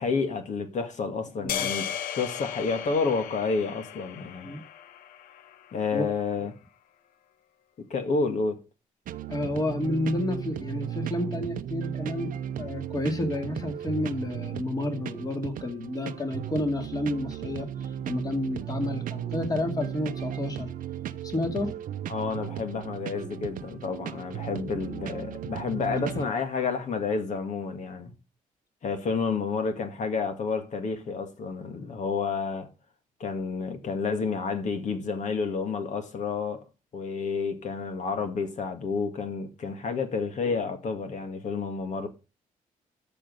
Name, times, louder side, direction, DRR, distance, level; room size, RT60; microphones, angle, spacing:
voice 1, 0.0-1.9 2.1-4.5 5.7-6.5 7.8-8.6 22.1-28.1 28.8-32.7 33.2-36.6 36.9-42.1, left 4 dB, 60° left, 2.0 m, -30 dB
sound 1, 1.5-5.8, left 9 dB, 80° left, 0.8 m, -36 dB
sound 2, 9.1-26.3, right 10 dB, 70° right, 0.7 m, -36 dB
voice 2, 9.3-20.7 21.2-21.7 25.9-26.0, left 1 dB, 25° left, 2.5 m, -30 dB
13.5 x 5.2 x 5.3 m
cardioid pair, 110°, 14 cm